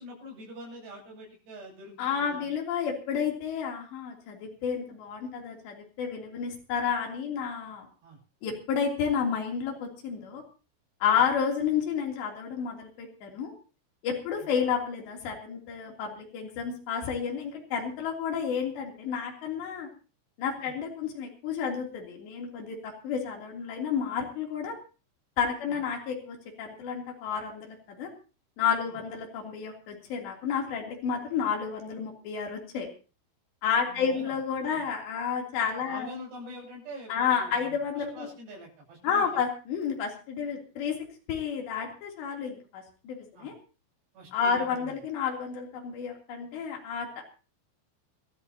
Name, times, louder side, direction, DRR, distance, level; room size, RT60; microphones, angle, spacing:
voice 1, 0.0-2.5 8.0-8.2 11.1-11.2 14.3-14.5 20.6-20.7 25.6-25.8 28.8-29.0 33.8-34.4 34.6-34.8 35.8-39.4 43.3-43.5 44.1-45.0, equal, 60° right, -6 dB, 9.7 m, -45 dB
voice 2, 2.0-7.9 8.4-10.4 11.0-13.5 14.0-19.9 20.4-24.7 25.4-28.1 28.6-32.9 33.6-36.1 37.1-38.3 39.0-41.0 41.3-43.6 44.3-47.2, left 7 dB, 60° left, 0 dB, 5.3 m, -31 dB
28.0 x 13.0 x 2.9 m, 0.35 s
omnidirectional pair, 5.8 m